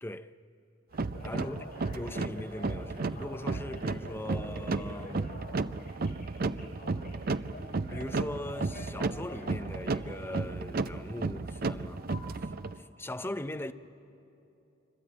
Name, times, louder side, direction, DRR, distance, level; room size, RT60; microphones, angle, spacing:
voice 1, 0.0-0.3 1.2-5.3 7.9-12.1 12.4-13.7, left 1 dB, 10° left, 0.6 m, -40 dB
Telephone, 0.9-10.5 12.1-12.2, left 2 dB, 45° left, 7.5 m, -48 dB
sound 1, 0.9-12.8, right 3 dB, 45° right, 0.5 m, -34 dB
25.5 x 25.0 x 8.8 m
head